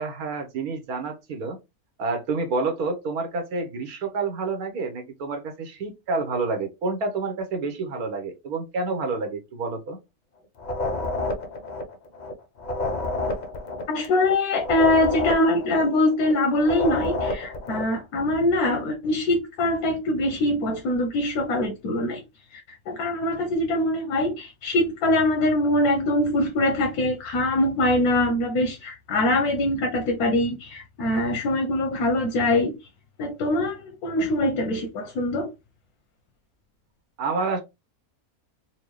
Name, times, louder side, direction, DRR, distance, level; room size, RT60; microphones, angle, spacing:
voice 1, 0.0-1.6 2.0-10.0 37.2-37.6, right 3 dB, 80° right, 1.4 m, -28 dB
sound 1, 10.6-12.3 12.6-16.3 16.6-17.9, left 2 dB, 55° left, 0.5 m, -29 dB
voice 2, 13.9-22.2 22.5-32.7 33.2-35.5, left 1 dB, 85° left, 1.3 m, -23 dB
4.5 x 2.3 x 3.1 m
omnidirectional pair, 1.5 m